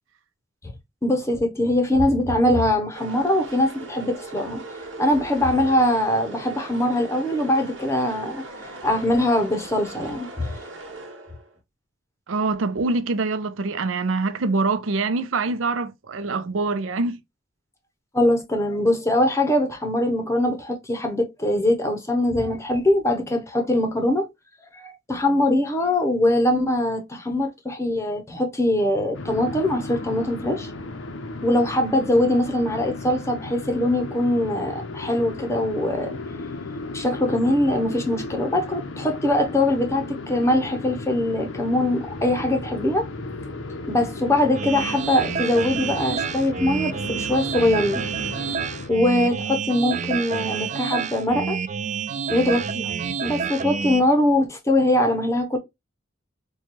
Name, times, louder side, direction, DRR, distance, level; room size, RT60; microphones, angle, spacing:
voice 1, 1.0-4.6 5.0-8.4 8.8-10.5 18.1-24.3 24.7-30.7 31.4-36.1 36.9-43.1 43.9-48.0 48.9-51.6 52.3-52.9 53.2-55.6, left 1 dB, 15° left, 0.7 m, -22 dB
sound 1, 2.9-11.6, right 2 dB, 70° right, 1.4 m, -39 dB
voice 2, 12.3-17.2, right 3 dB, 85° right, 0.6 m, -24 dB
sound 2, 29.1-48.9, left 2 dB, 80° left, 0.7 m, -35 dB
sound 3, 44.5-54.0, right 6 dB, 40° right, 0.3 m, -28 dB
4.3 x 2.3 x 2.9 m
head